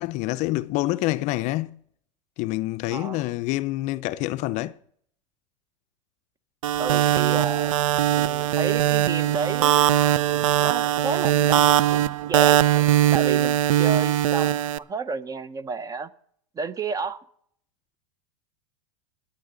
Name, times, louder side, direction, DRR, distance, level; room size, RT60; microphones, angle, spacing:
voice 1, 0.0-1.8 2.4-4.8, left 18 dB, 45° left, 0.4 m, -27 dB
voice 2, 2.9-3.2 6.8-7.8 8.1-9.7 10.6-12.0 12.3-12.7 13.1-16.1 16.6-17.2, right 4 dB, 20° right, 0.6 m, -31 dB
sound 1, 6.6-14.8, right 13 dB, 80° right, 0.4 m, -20 dB
20.0 x 8.8 x 3.8 m
hypercardioid pair, 115°, 17 cm